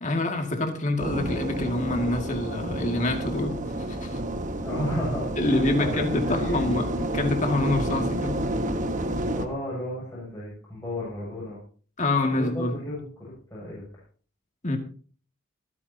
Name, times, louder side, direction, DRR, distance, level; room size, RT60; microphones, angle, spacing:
voice 1, 0.0-4.2 5.4-8.4 12.0-12.8 14.6-14.8, left 2 dB, 35° left, 2.2 m, -26 dB
sound 1, 1.0-9.5, right 1 dB, 35° right, 1.2 m, -29 dB
voice 2, 4.6-6.8 9.4-11.6 12.3-13.8, left 1 dB, 15° left, 7.2 m, -33 dB
24.5 x 9.7 x 2.9 m
head